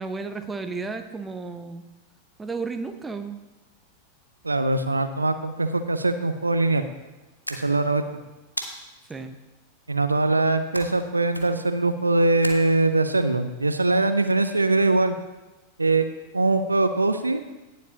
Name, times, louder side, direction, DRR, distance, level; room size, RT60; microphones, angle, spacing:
voice 1, 0.0-1.8 2.4-3.4 9.1-9.4, right 4 dB, 10° right, 8 dB, 0.7 m, -33 dB
voice 2, 4.4-6.8 7.5-8.0 9.9-15.1 15.8-16.1 16.3-17.4, right 2 dB, 80° right, 10 dB, 0.5 m, -22 dB
sound 1, 7.4-8.0 8.6-9.2 10.7-11.1 11.3-11.7 12.4-13.1, equal, 90° left, 0.8 m, -36 dB
17.5 x 7.4 x 2.8 m, 1.1 s
figure-of-eight pair, 90°, 0 cm